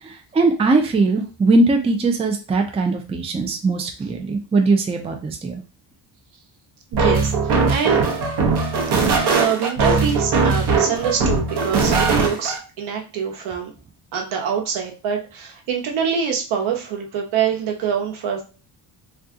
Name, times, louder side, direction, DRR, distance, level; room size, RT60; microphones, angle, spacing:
voice 1, 0.0-5.6, right 3 dB, 15° right, 4 dB, 0.4 m, -20 dB
sound 1, 6.9-12.6, right 4 dB, 60° right, 0.9 m, -19 dB
voice 2, 6.9-8.1 9.3-13.7 14.1-18.4, right 7 dB, 80° right, 1 dB, 1.0 m, -25 dB
2.7 x 2.3 x 3.6 m, 0.34 s
cardioid pair, 135°, 46 cm